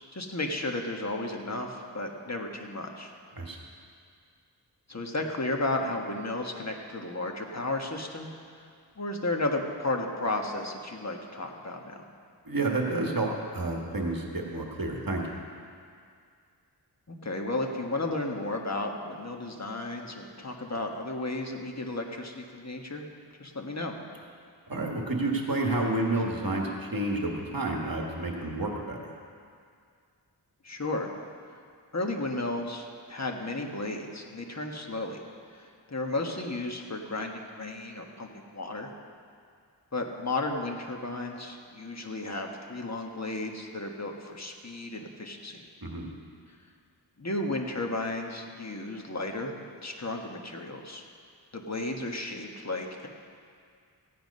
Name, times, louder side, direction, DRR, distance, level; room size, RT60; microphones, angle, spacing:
voice 1, 0.1-3.1 4.9-8.3 9.0-12.1 17.1-23.1 23.4-24.0 30.6-31.1 31.4-31.6 31.9-35.2 35.5-38.9 39.9-45.6 47.2-51.0 51.5-53.1, left 2 dB, 40° left, 2 dB, 1.4 m, -33 dB
voice 2, 12.4-15.3 24.7-29.0 45.8-46.1, right 2 dB, 55° right, 0 dB, 1.6 m, -30 dB
15.5 x 9.4 x 5.4 m, 2.2 s
wide cardioid pair, 60°, 42 cm